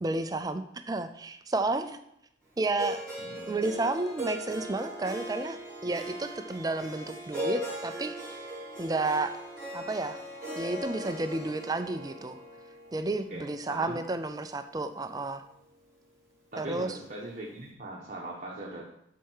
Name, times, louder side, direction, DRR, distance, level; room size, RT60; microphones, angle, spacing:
voice 1, 0.0-2.0 2.6-3.0 3.5-8.4 8.8-9.4 9.7-10.2 10.6-12.4 12.9-15.4 16.6-17.0, right 2 dB, 20° right, 9 dB, 0.4 m, -31 dB
Harp, 2.8-14.9, equal, 5° left, 3.7 m, -39 dB
voice 2, 3.2-3.5 13.3-14.0 16.5-18.8, right 1 dB, 40° right, -3 dB, 1.2 m, -40 dB
12.0 x 4.5 x 4.7 m, 0.77 s
head